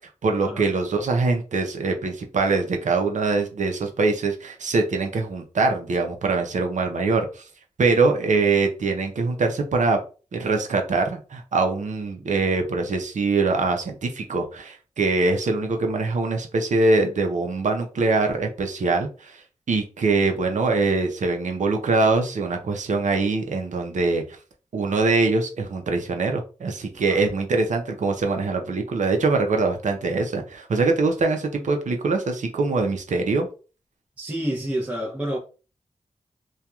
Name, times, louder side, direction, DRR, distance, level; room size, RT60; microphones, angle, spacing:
voice 1, 0.2-7.4 7.8-10.0 10.3-19.4 19.7-24.2 24.7-33.5, right 3 dB, 75° right, 0.6 m, -23 dB
voice 2, 34.2-35.4, right 1 dB, 10° right, 0.7 m, -28 dB
2.7 x 2.3 x 2.3 m
cardioid pair, 45°, 13 cm